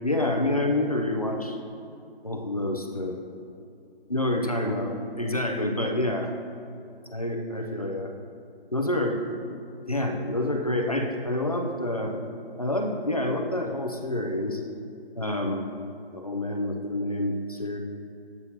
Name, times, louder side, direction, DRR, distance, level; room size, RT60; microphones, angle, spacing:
voice 1, 0.0-1.6 2.2-3.2 4.1-6.3 7.1-8.1 8.7-9.2 9.9-12.2 12.6-14.6 15.2-15.7 16.1-17.8, left 1 dB, 40° left, 2 dB, 0.4 m, -27 dB
8.1 x 5.4 x 2.8 m, 2.5 s
hypercardioid pair, 180°, 31 cm